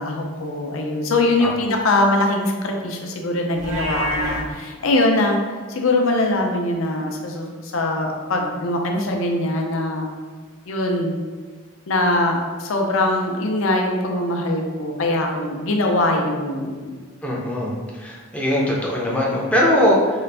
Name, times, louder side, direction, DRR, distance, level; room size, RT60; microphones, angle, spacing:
voice 1, 0.0-5.4 5.7-10.1 10.7-11.2 11.9-17.0, left 2 dB, 65° left, 2 dB, 0.5 m, -22 dB
Livestock farm animals working animals, 3.5-4.4, equal, 70° right, 0.8 m, -26 dB
voice 2, 17.2-17.7 18.0-20.2, left 1 dB, 5° left, -4 dB, 0.5 m, -20 dB
3.8 x 2.4 x 3.3 m, 1.5 s
head